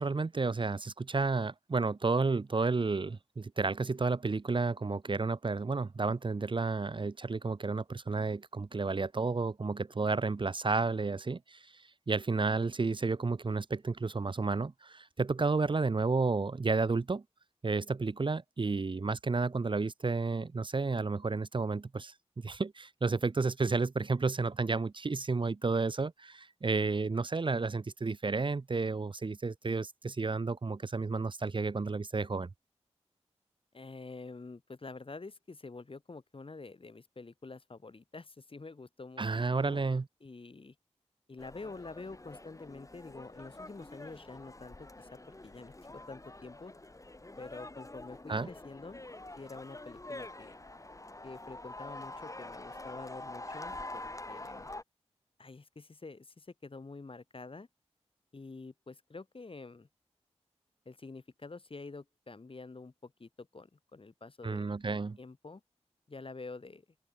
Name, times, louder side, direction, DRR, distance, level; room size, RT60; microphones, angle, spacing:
voice 1, 0.0-17.2 17.6-22.1 22.4-32.5 39.2-40.1 48.3-48.5 64.4-65.2, right 4 dB, 45° right, 0.9 m, -31 dB
voice 2, 33.7-39.8 40.2-40.7 41.3-46.7 47.4-49.0 49.4-50.5 51.2-54.7 55.4-57.7 58.3-59.9 60.8-65.6 66.1-66.8, left 3 dB, 50° left, 5.1 m, -47 dB
sound 1, 41.4-54.8, left 2 dB, 30° left, 4.6 m, -46 dB
open air
cardioid pair, 50°, 12 cm